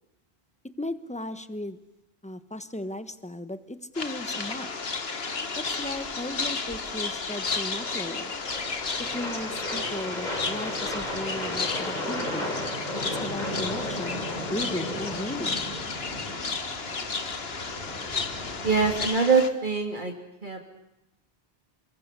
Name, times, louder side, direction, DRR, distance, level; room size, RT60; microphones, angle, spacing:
voice 1, 0.8-1.8 2.2-4.7 5.6-8.3 9.0-12.5 13.1-15.6, left 1 dB, 5° left, 11 dB, 1.3 m, -36 dB
sound 1, 3.9-19.5, left 4 dB, 65° left, 1.9 m, -33 dB
sound 2, 5.8-19.1, left 1 dB, 40° left, 4.0 m, -36 dB
voice 2, 18.6-20.1 20.4-20.6, right 4 dB, 50° right, 3 dB, 3.1 m, -23 dB
28.5 x 21.5 x 8.3 m, 0.88 s
omnidirectional pair, 1.1 m